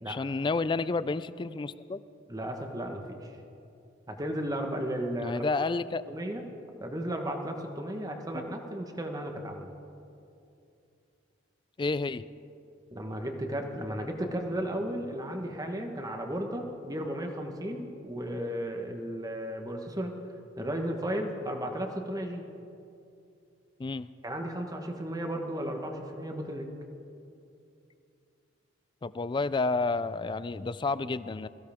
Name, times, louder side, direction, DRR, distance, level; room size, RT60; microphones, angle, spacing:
voice 1, 0.1-2.0 5.2-6.0 8.3-8.4 11.8-12.3 23.8-24.1 29.0-31.5, left 3 dB, 25° left, 16 dB, 0.3 m, -30 dB
voice 2, 2.3-3.3 4.1-5.4 6.1-6.4 6.8-9.7 12.9-20.1 20.6-22.4 24.2-26.7, right 1 dB, 20° right, 3 dB, 1.3 m, -34 dB
21.5 x 15.5 x 3.6 m, 2.7 s
head